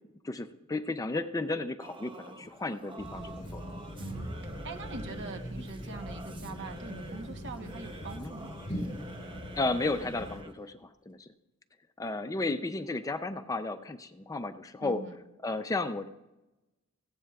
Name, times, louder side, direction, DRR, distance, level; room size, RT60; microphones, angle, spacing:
voice 1, 0.2-3.6 8.2-8.3 9.6-11.3 12.0-15.0 15.4-16.1, left 2 dB, 15° left, 10 dB, 0.4 m, -33 dB
Singing / Musical instrument, 1.8-10.7, right 2 dB, 20° right, 0.7 m, -48 dB
sound 1, 3.0-10.4, equal, 35° left, 3.3 m, -41 dB
voice 2, 4.0-8.5 14.8-15.2, right 3 dB, 55° right, 7 dB, 1.0 m, -43 dB
17.5 x 15.5 x 2.3 m, 1.0 s
head